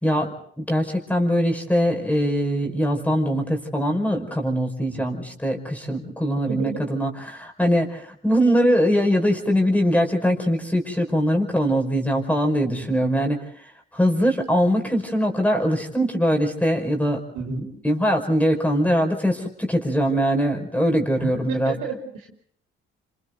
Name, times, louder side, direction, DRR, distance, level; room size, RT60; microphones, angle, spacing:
voice 1, 0.0-13.4 13.9-17.2 17.8-21.7, equal, 5° left, 2 dB, 5.4 m, -22 dB
voice 2, 6.4-6.8 12.8-13.0 17.3-17.7 21.2-22.3, right 4 dB, 80° right, 1 dB, 5.1 m, -32 dB
28.0 x 26.5 x 4.0 m, 0.62 s
supercardioid pair, 55°, 29 cm